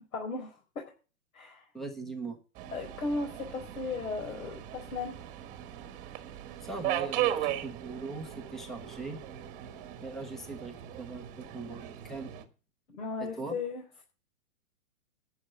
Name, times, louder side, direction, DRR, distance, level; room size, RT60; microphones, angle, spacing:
voice 1, 0.1-0.8 1.3-1.6 2.7-5.1 12.9-14.0, left 3 dB, 75° left, 2 dB, 4.8 m, -36 dB
voice 2, 1.7-2.4 6.6-9.2 10.0-12.3 13.2-13.6, right 3 dB, ahead, 7 dB, 0.7 m, -40 dB
Subway metro underground, 2.6-12.4, right 12 dB, 20° right, 1.4 m, -37 dB
11.0 x 6.6 x 8.7 m, 0.35 s
hypercardioid pair, 165°, 41 cm